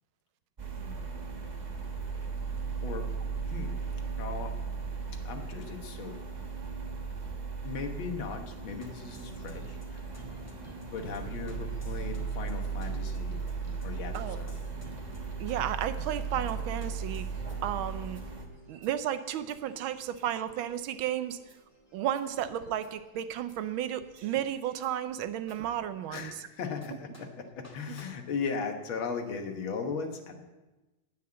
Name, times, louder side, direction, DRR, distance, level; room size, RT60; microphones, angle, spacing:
sound 1, 0.6-18.5, right 5 dB, 30° right, 0.8 m, -37 dB
voice 1, 0.8-1.1 14.1-14.4 15.4-17.3 17.6-18.2 18.7-21.4 21.9-26.3, right 11 dB, 75° right, 12 dB, 1.4 m, -33 dB
voice 2, 2.5-3.1 3.4-4.5 5.3-6.2 7.6-10.1 10.8-13.4 13.8-14.6 26.1-30.4, left 5 dB, 75° left, 5 dB, 2.1 m, -38 dB
sound 2, 8.6-26.2 26.8-26.9 27.1-27.2 27.6-27.7 28.0-28.1, right 2 dB, 5° left, 2.1 m, -51 dB
9.7 x 9.3 x 7.6 m, 1.1 s
omnidirectional pair, 2.3 m